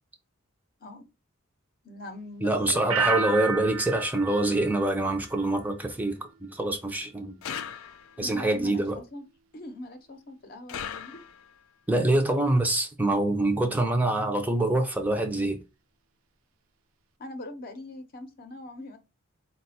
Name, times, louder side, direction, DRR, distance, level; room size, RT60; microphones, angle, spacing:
voice 1, 1.8-3.3 8.2-9.2 9.5-11.2 17.2-19.0, left 2 dB, 45° left, 0.7 m, -42 dB
voice 2, 2.4-7.4 8.2-9.0 11.9-15.6, right 2 dB, 10° right, 0.4 m, -25 dB
sound 1, 2.9-5.7 6.1-6.5, right 4 dB, 85° right, 0.5 m, -32 dB
sound 2, 7.4-8.3 10.7-11.6, left 8 dB, 80° left, 0.3 m, -38 dB
4.1 x 2.2 x 4.1 m
head